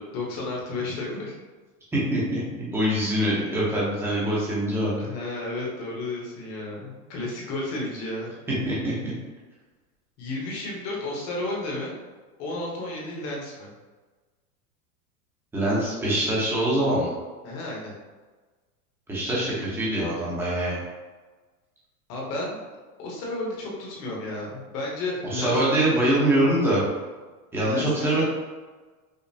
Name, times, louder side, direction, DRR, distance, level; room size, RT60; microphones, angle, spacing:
voice 1, 0.1-1.4 5.0-8.3 10.2-12.0 12.4-13.7 17.4-17.9 22.1-22.7 23.0-25.6 27.7-28.2, left 2 dB, 35° left, -3 dB, 1.0 m, -32 dB
voice 2, 1.9-5.0 8.6-9.1 15.5-17.1 19.1-20.8 25.2-26.8 27.5-28.2, right 1 dB, 5° right, -7 dB, 0.7 m, -24 dB
5.2 x 2.0 x 2.7 m, 1.3 s
supercardioid pair, 150°, 45 cm